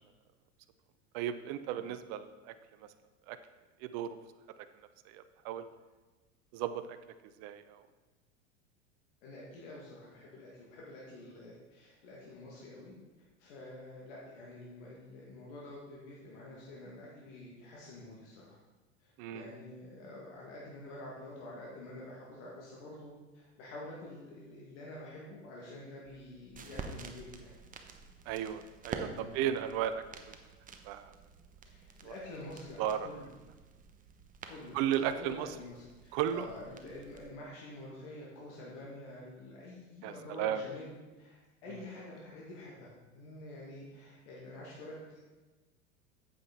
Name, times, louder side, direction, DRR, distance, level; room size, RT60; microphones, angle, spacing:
voice 1, 1.1-2.5 2.8-2.9 3.3-3.4 3.8-4.2 5.0-5.6 6.5-7.0 7.4-7.9 19.2-19.5 28.3-30.4 30.8-31.1 32.0-32.1 32.8-33.1 34.7-35.5 36.1-36.5 40.0-40.6, right 10 dB, 45° right, 11 dB, 0.6 m, -35 dB
voice 2, 9.2-18.6 19.0-27.5 29.1-29.6 31.7-33.3 34.5-45.2, left 1 dB, 65° left, -5 dB, 2.3 m, -48 dB
sound 1, 26.1-37.3, right 4 dB, 20° right, 0.9 m, -49 dB
8.6 x 7.7 x 4.1 m, 1.2 s
hypercardioid pair, 90°, 39 cm